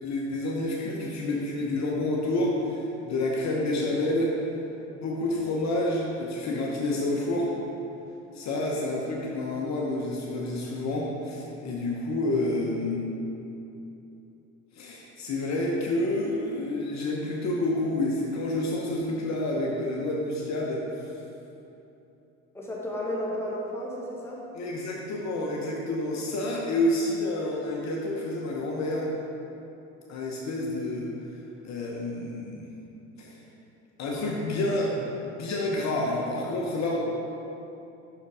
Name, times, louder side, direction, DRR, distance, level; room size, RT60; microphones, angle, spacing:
voice 1, 0.0-4.4 4.9-7.5 8.3-13.0 14.7-21.0 24.5-29.1 30.1-31.1 31.6-32.7 33.2-33.4 34.0-35.0 35.4-37.0, left 1 dB, 50° left, -2 dB, 1.1 m, -29 dB
voice 2, 22.5-24.5, equal, 5° left, -5 dB, 1.6 m, -33 dB
6.0 x 5.6 x 4.8 m, 2.9 s
hypercardioid pair, 80°, 36 cm